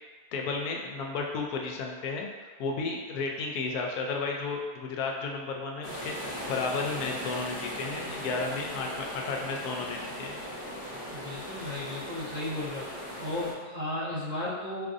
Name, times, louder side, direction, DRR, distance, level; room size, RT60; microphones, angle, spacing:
voice 1, 0.3-2.3 2.6-10.4, left 4 dB, 80° left, 1 dB, 1.0 m, -33 dB
sound 1, 5.8-13.5, equal, 45° left, 0.8 m, -38 dB
voice 2, 11.1-12.9 13.2-14.9, left 1 dB, 45° right, -8 dB, 0.6 m, -34 dB
4.6 x 2.5 x 2.5 m, 1.4 s
omnidirectional pair, 1.6 m